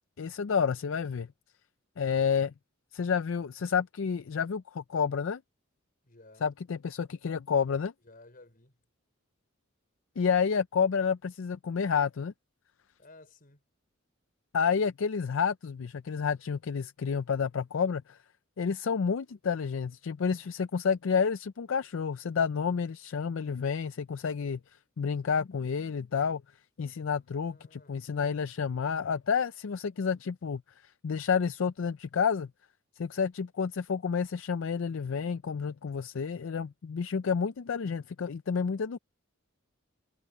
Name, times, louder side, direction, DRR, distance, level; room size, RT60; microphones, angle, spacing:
voice 1, 0.2-1.3 2.0-2.5 2.9-5.4 6.4-7.9 10.2-12.3 14.5-18.2 18.6-24.6 25.0-26.4 26.8-32.5 33.0-39.0, left 6 dB, 65° left, 0.4 m, -30 dB
voice 2, 6.0-6.4 8.0-8.8 13.0-13.6 27.3-28.1, left 2 dB, 45° left, 4.9 m, -55 dB
head